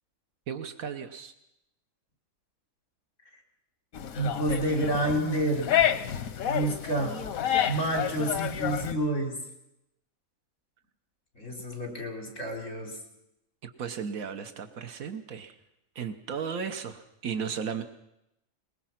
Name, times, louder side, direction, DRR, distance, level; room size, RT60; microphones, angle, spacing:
voice 1, 0.5-1.3 13.6-15.6 15.9-17.8, right 6 dB, 85° right, 9 dB, 1.5 m, -35 dB
sound 1, 3.9-8.9, left 10 dB, 90° left, 1.4 m, -29 dB
voice 2, 4.1-5.7 6.4-7.2 7.7-9.4 11.3-13.0, right 1 dB, 65° left, 3 dB, 4.3 m, -29 dB
21.5 x 21.0 x 5.9 m, 0.84 s
omnidirectional pair, 1.4 m